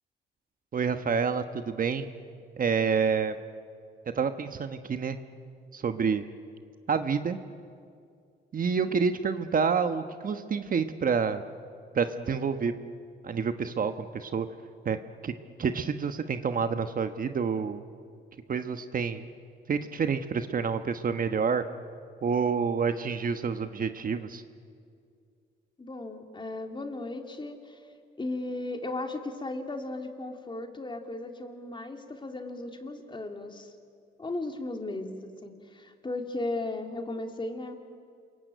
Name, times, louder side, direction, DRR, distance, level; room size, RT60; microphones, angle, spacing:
voice 1, 0.7-2.1 2.6-3.4 4.1-5.2 5.7-6.2 6.9-7.4 8.5-11.4 11.9-12.7 13.2-14.5 14.8-15.0 15.2-15.3 15.6-17.8 18.5-19.2 19.7-21.6 22.2-24.4, right 6 dB, 45° right, 9 dB, 1.2 m, -28 dB
voice 2, 25.8-27.8 28.2-33.7 34.2-37.7, left 2 dB, 25° left, 4 dB, 2.9 m, -36 dB
28.5 x 22.5 x 9.2 m, 2.3 s
cardioid pair, 90°, 20 cm